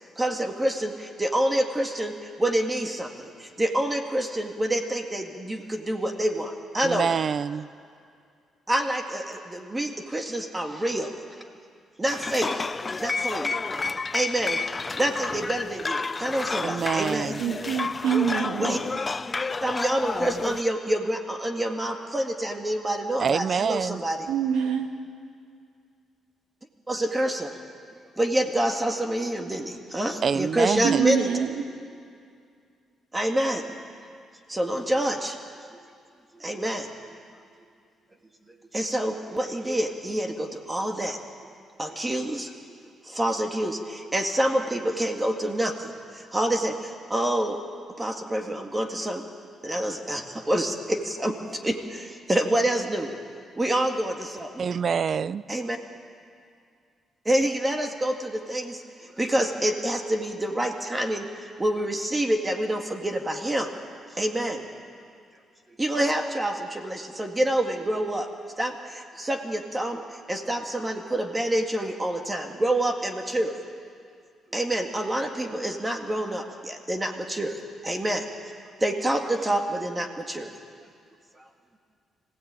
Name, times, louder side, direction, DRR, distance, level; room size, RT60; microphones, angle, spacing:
voice 1, 0.2-7.1 8.7-11.1 12.0-12.7 13.0-13.6 14.1-14.6 15.0-17.3 18.6-18.8 19.6-24.3 26.9-27.5 28.2-31.3 33.1-33.6 34.5-35.4 36.3-37.2 38.7-41.2 41.8-42.5 43.1-45.9 46.3-47.6 48.0-49.2 49.6-53.1 53.6-54.6 55.5-55.8 57.3-58.8 59.2-61.3 61.6-63.7 64.2-64.6 65.8-68.3 68.6-70.0 70.3-73.5 74.5-77.6 77.8-78.3 78.8-80.5, right 1 dB, 15° right, 2.1 m, -27 dB
voice 2, 6.8-7.7 16.6-17.4 23.2-24.0 30.2-31.1 54.6-55.4, right 6 dB, 50° right, 0.5 m, -26 dB
sound 1, 12.1-20.6, left 4 dB, 25° left, 0.5 m, -30 dB
voice 3, 17.4-18.7 24.3-24.9 30.8-31.6, right 8 dB, 90° right, 2.1 m, -26 dB
25.5 x 16.5 x 9.0 m
cardioid pair, 90°, 0 cm